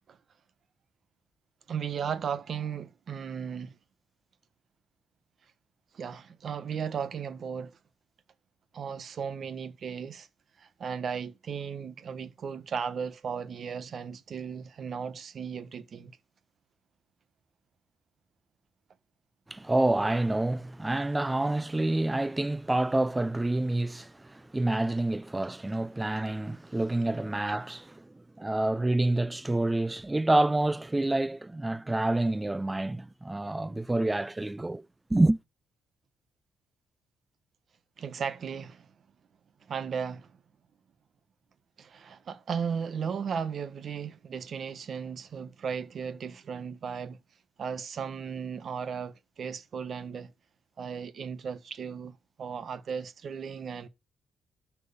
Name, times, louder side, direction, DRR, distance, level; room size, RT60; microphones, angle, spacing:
voice 1, 1.7-3.7 5.9-7.8 8.7-10.3 10.6-16.2 38.0-38.9 39.7-40.3 41.8-47.2 47.6-50.3 50.8-53.9, right 6 dB, 55° right, 1.3 m, -36 dB
voice 2, 19.5-34.8 35.1-35.4, right 2 dB, 15° right, 0.5 m, -28 dB
12.0 x 4.8 x 6.9 m
cardioid pair, 90°, 0 cm